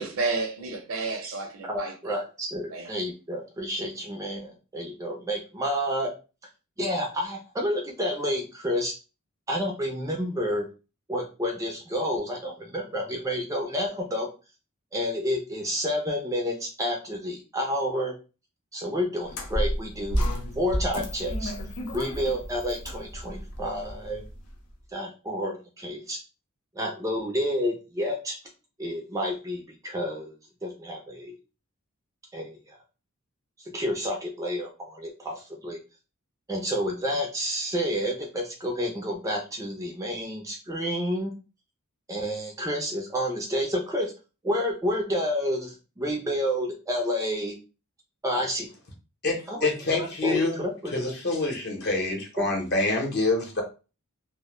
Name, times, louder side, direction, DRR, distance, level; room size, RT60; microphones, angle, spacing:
voice 1, 0.0-2.2 2.7-2.9, right 3 dB, 65° right, 0.6 m, -31 dB
voice 2, 1.7-6.1 6.8-8.9 9.5-10.7 11.1-14.3 14.9-18.1 18.7-20.2 20.6-21.5 21.9-24.2 24.9-26.2 26.8-28.4 28.8-30.4 30.6-31.3 32.3-32.6 33.7-35.8 36.5-41.3 42.1-44.1 44.4-47.6 48.2-48.7 49.5-50.9 52.4-52.5, equal, 15° right, 0.4 m, -29 dB
sound 1, 19.3-24.5, equal, 85° left, 0.6 m, -31 dB
voice 3, 49.2-50.6 50.9-53.6, left 2 dB, 50° left, 0.8 m, -26 dB
2.1 x 2.0 x 3.0 m
head